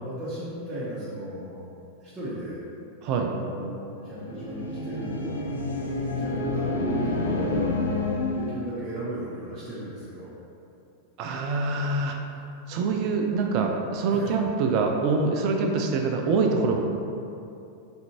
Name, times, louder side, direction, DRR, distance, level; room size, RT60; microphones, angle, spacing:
voice 1, 0.0-1.7 2.0-2.6 3.3-5.5 6.2-7.7 8.3-10.4 14.1-14.4, right 1 dB, 25° right, -11 dB, 0.7 m, -35 dB
voice 2, 3.0-3.3 11.2-12.2 12.7-16.8, right 4 dB, 40° right, 3 dB, 0.3 m, -25 dB
sound 1, 4.1-8.7, left 2 dB, 70° left, 0.4 m, -28 dB
3.3 x 2.5 x 2.9 m, 2.7 s
figure-of-eight pair, 90°, 0 cm